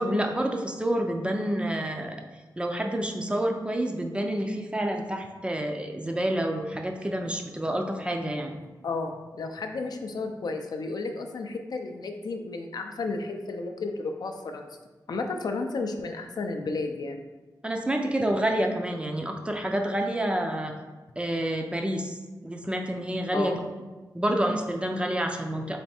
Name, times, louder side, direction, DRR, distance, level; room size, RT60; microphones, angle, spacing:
voice 1, 0.0-2.2 2.6-8.6 17.6-20.7 21.2-22.2 22.4-23.6 24.1-25.8, right 1 dB, 15° right, 3 dB, 0.4 m, -28 dB
voice 2, 8.8-14.7 15.1-17.2 23.3-23.6, left 3 dB, 60° left, 4 dB, 0.4 m, -32 dB
3.4 x 3.1 x 4.2 m, 1.2 s
wide cardioid pair, 115°, 8 cm